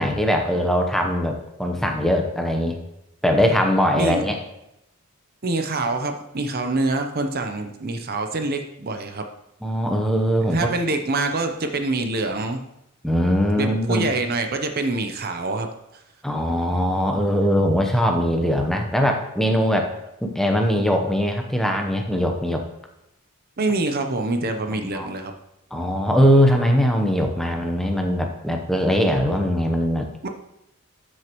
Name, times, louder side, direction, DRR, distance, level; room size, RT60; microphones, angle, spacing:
voice 1, 0.0-2.8 3.2-4.4 9.6-10.7 13.0-14.1 16.2-19.9 20.2-22.6 24.7-25.1 25.7-30.1, equal, ahead, 3 dB, 0.8 m, -21 dB
voice 2, 3.9-4.3 5.4-9.2 10.5-12.6 13.6-15.7 23.6-25.3 30.2-30.3, right 2 dB, 45° right, 5 dB, 0.7 m, -25 dB
13.0 x 6.3 x 3.0 m, 0.85 s
head